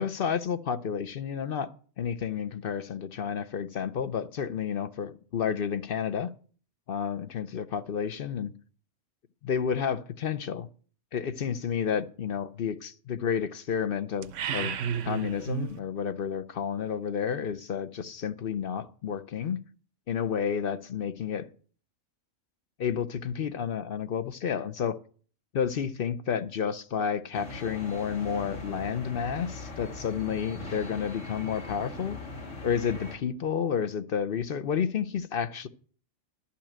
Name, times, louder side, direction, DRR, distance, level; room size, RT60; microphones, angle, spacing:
voice 1, 0.0-1.7 2.0-6.3 6.9-8.5 9.4-10.7 11.1-14.8 15.0-19.6 20.1-21.5 22.8-25.0 25.5-32.2 32.6-35.7, left 7 dB, 55° left, 0.8 m, -31 dB
sound 1, 14.2-15.8, right 8 dB, 75° right, 1.1 m, -32 dB
sound 2, 27.3-33.2, left 2 dB, 75° left, 3.1 m, -40 dB
12.0 x 5.7 x 8.7 m
omnidirectional pair, 1.3 m